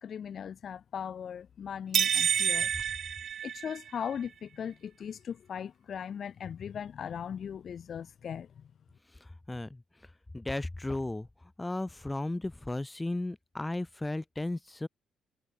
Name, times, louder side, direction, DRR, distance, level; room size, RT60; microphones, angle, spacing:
voice 1, 0.0-2.7 3.4-8.6, left 8 dB, 55° left, 1.3 m, -39 dB
sound 1, 1.9-4.1, right 8 dB, 60° right, 0.7 m, -28 dB
voice 2, 9.5-9.8 10.3-11.3 11.6-14.9, left 2 dB, 15° left, 0.8 m, -34 dB
cardioid pair, 90°, 0 cm